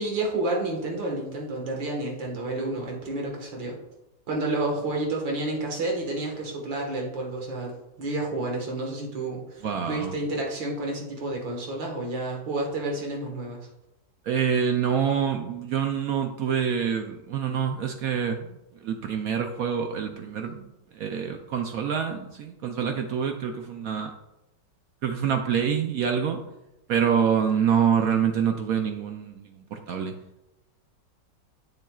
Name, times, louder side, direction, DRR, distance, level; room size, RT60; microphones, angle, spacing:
voice 1, 0.0-3.8 4.3-13.6, right 2 dB, 85° right, 0 dB, 2.2 m, -30 dB
voice 2, 9.6-10.1 14.3-20.7 20.9-24.1 25.0-26.4 26.9-30.1, right 7 dB, 70° right, 4 dB, 0.9 m, -26 dB
7.9 x 7.4 x 2.3 m, 0.92 s
omnidirectional pair, 2.0 m